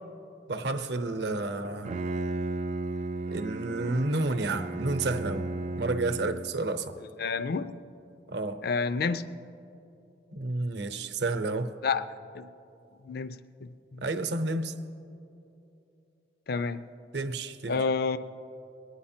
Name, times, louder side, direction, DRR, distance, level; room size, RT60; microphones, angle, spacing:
voice 1, 0.5-1.9 3.3-5.5 5.8-7.0 8.3-8.6 10.3-11.7 14.0-14.7 17.1-17.8, right 2 dB, 65° right, 9 dB, 0.7 m, -30 dB
Bowed string instrument, 1.6-6.7, right 3 dB, 40° right, 0.3 m, -34 dB
voice 2, 7.2-7.7 8.6-9.2 11.8-12.1 12.3-12.5 13.1-14.0 16.5-16.8 17.7-18.2, left 4 dB, 55° left, 13 dB, 0.4 m, -29 dB
22.5 x 9.5 x 4.4 m, 2.8 s
head